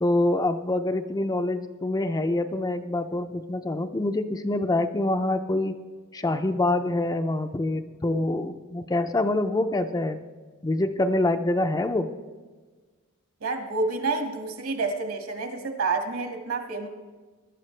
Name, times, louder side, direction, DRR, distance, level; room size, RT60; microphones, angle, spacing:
voice 1, 0.0-5.8 6.1-10.2 10.6-12.1, left 2 dB, 15° left, 7 dB, 0.4 m, -25 dB
voice 2, 13.4-16.9, right 3 dB, 65° right, 4 dB, 1.9 m, -29 dB
20.0 x 12.0 x 3.3 m, 1.4 s
head